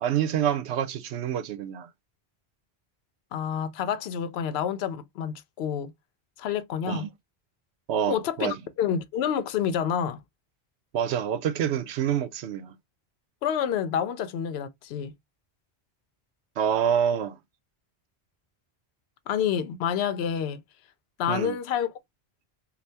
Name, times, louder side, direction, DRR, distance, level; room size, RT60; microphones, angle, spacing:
voice 1, 0.0-1.9 6.9-7.1 7.9-8.6 10.9-12.8 16.6-17.4 21.3-21.6, right 9 dB, 85° right, 0.9 m, -27 dB
voice 2, 3.3-5.9 6.4-7.0 8.1-10.2 13.4-15.1 19.3-20.6 21.2-21.9, left 8 dB, 75° left, 0.8 m, -28 dB
2.7 x 2.4 x 3.3 m
omnidirectional pair, 1.1 m